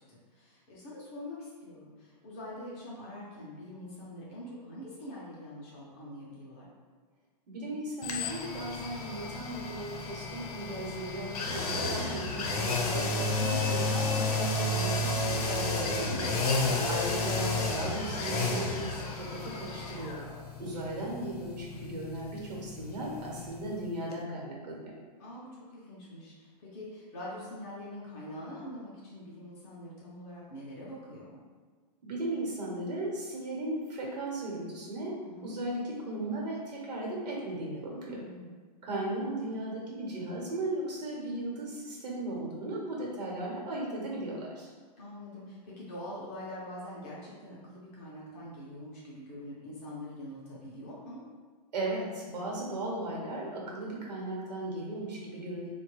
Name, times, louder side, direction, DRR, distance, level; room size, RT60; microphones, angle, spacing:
voice 1, 0.1-6.7 12.8-13.3 25.2-31.4 35.2-35.5 37.9-38.5 45.0-51.2, left 1 dB, 20° left, -6 dB, 0.4 m, -44 dB
voice 2, 7.5-16.4 16.9-20.2 20.6-24.9 32.0-35.1 35.4-38.2 38.8-44.7 51.7-55.7, right 1 dB, 90° right, -3 dB, 0.9 m, -36 dB
sound 1, 8.0-23.8 24.1-24.2, left 2 dB, 65° left, 0.6 m, -32 dB
3.2 x 2.2 x 3.0 m, 1.5 s
supercardioid pair, 175°, 20 cm